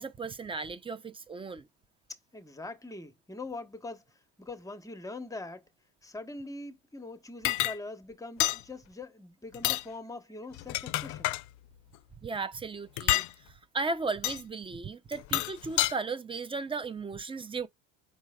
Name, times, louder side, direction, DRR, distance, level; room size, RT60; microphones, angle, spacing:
voice 1, 0.0-1.7 12.2-17.7, right 4 dB, 15° right, 0.4 m, -36 dB
voice 2, 2.3-5.6 6.0-11.3, left 2 dB, 10° left, 0.9 m, -43 dB
sound 1, 7.4-7.8 8.4-8.6 9.5-9.8 10.5-11.4 13.0-13.3 14.2-14.4 15.1-15.9, left 17 dB, 55° left, 0.5 m, -28 dB
4.5 x 4.1 x 2.2 m
supercardioid pair, 100°, 35 cm